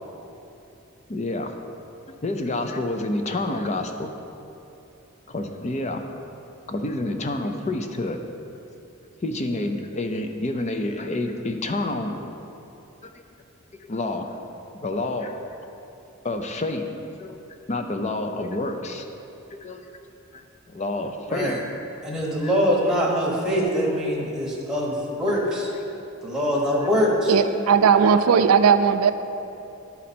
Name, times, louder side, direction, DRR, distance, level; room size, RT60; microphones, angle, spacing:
voice 1, 1.1-1.5 2.2-4.1 5.3-6.0 6.7-8.2 9.2-12.1 13.0-13.1 13.8-14.4 14.7-15.4 16.2-16.9 17.2-17.4 17.7-19.0 19.5-19.9 20.3-20.4 20.7-21.6 22.4-22.6 25.5-25.6 26.8-27.1, left 2 dB, 35° left, 6 dB, 0.5 m, -28 dB
voice 2, 22.0-25.7 26.2-27.6, equal, 5° right, -4 dB, 1.2 m, -23 dB
voice 3, 27.3-29.1, right 6 dB, 90° right, 11 dB, 0.4 m, -17 dB
11.5 x 4.2 x 4.3 m, 2.9 s
head